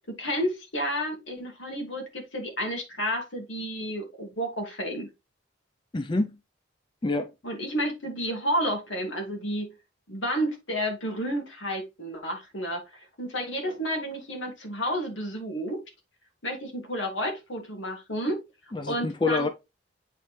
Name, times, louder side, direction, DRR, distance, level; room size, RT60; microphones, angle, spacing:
voice 1, 0.1-5.1 7.4-9.7 10.1-15.8 16.4-18.4 18.9-19.5, equal, 85° left, 2.4 m, -31 dB
voice 2, 5.9-6.3 7.0-7.3 18.7-19.5, left 3 dB, 25° left, 0.4 m, -26 dB
8.3 x 4.1 x 3.2 m
head